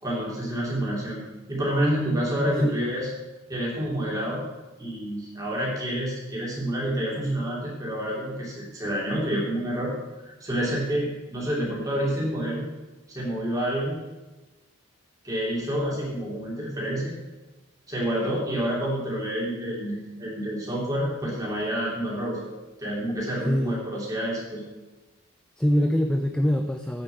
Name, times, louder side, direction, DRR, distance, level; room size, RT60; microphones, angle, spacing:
voice 1, 0.0-1.2 1.5-3.1 3.5-4.4 4.8-9.9 10.2-12.6 13.1-14.0 15.2-17.1 17.9-22.5 22.8-24.6, equal, 15° right, -5 dB, 3.0 m, -28 dB
voice 2, 2.4-2.8 21.2-21.3 23.4-23.8 25.6-27.0, equal, 5° left, 5 dB, 0.3 m, -24 dB
8.9 x 6.8 x 6.9 m, 1.1 s
head